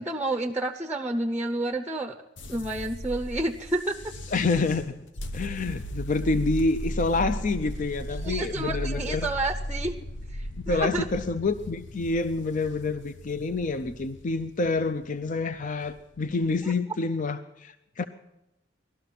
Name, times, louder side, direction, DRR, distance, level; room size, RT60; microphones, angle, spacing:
voice 1, 0.0-2.2 2.5-4.1 8.2-10.0 10.3-11.1, right 2 dB, 10° right, 5 dB, 0.6 m, -30 dB
sound 1, 2.4-16.6, equal, 75° left, 0.8 m, -37 dB
voice 2, 4.3-4.9 5.3-9.3 10.7-18.0, left 3 dB, 45° left, 10 dB, 0.5 m, -27 dB
19.0 x 12.5 x 5.9 m, 0.93 s
head